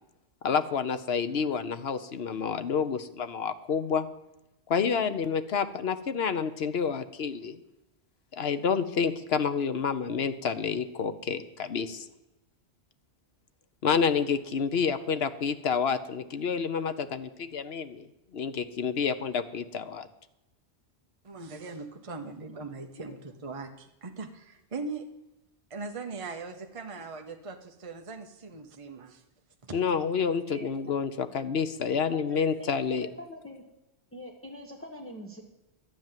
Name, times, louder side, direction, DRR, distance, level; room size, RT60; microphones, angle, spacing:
voice 1, 0.4-4.1 4.7-7.6 8.3-12.1 13.8-18.1 18.3-20.1 29.7-33.1, left 6 dB, 65° left, 11 dB, 1.1 m, -29 dB
voice 2, 21.2-25.1 25.7-29.2 29.6-30.0 32.4-32.5, right 3 dB, 30° right, 4 dB, 0.9 m, -40 dB
voice 3, 32.1-33.6 34.1-35.4, left 1 dB, 10° left, 1 dB, 1.4 m, -44 dB
12.0 x 9.2 x 7.5 m, 0.94 s
omnidirectional pair, 1.1 m